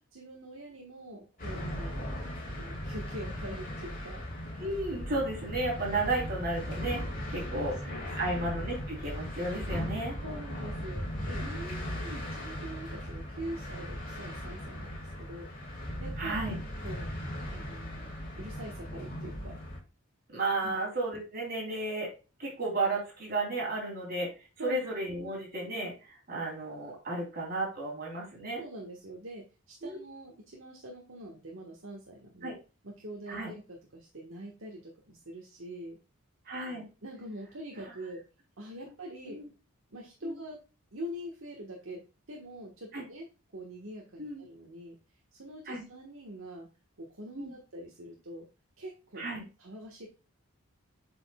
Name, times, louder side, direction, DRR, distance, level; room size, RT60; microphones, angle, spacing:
voice 1, 0.1-2.1 2.5-4.3 7.5-8.3 10.2-15.5 16.0-16.4 16.8-17.1 17.4-18.1 18.3-19.6 20.6-20.8 24.6-24.8 28.6-32.5 32.8-36.0 37.0-38.2 38.6-39.4 39.9-40.6 40.9-42.0 42.3-43.3 43.5-45.0 45.3-46.7 47.0-48.5 48.8-50.1, right 1 dB, 65° right, -1 dB, 1.4 m, -44 dB
sound 1, 1.4-19.8, equal, 40° left, 2.0 m, -38 dB
voice 2, 4.6-7.0 7.3-10.1 11.4-12.3 16.2-16.6 20.3-22.1 22.4-28.6 29.8-30.0 32.4-32.5 33.3-33.5 36.4-36.9 37.8-37.9 39.2-39.5 40.2-40.4 42.9-43.1 44.2-44.4 45.6-45.8 47.3-47.6 49.2-49.4, right 2 dB, 45° right, -2 dB, 3.3 m, -34 dB
7.8 x 5.2 x 2.3 m, 0.31 s
head